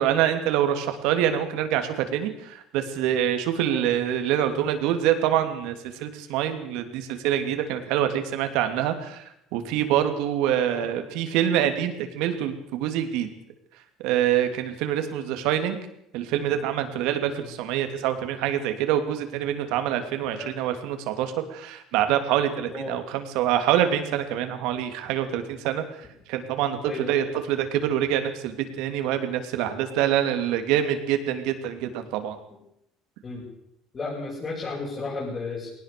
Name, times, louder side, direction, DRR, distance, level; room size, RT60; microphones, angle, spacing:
voice 1, 0.0-9.2 9.5-13.3 14.0-15.8 16.1-32.4, right 10 dB, 80° right, 7 dB, 2.9 m, -25 dB
voice 2, 22.7-23.0 26.8-27.2 33.2-33.4 33.9-35.7, left 3 dB, 30° left, -5 dB, 7.9 m, -34 dB
20.5 x 18.5 x 6.9 m, 0.76 s
cardioid pair, 125°, 0 cm